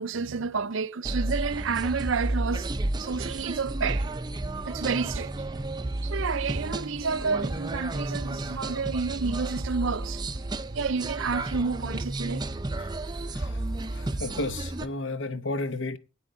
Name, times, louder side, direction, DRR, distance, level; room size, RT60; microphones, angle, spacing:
voice 1, 0.0-2.7 3.0-4.1 4.6-5.3 6.0-10.2 10.7-12.5, right 5 dB, 60° right, 0.6 m, -30 dB
sound 1, 1.0-14.9, right 2 dB, 20° right, 0.6 m, -32 dB
voice 2, 12.8-13.6 13.9-16.0, left 2 dB, 60° left, 0.9 m, -33 dB
20.5 x 9.3 x 3.8 m
head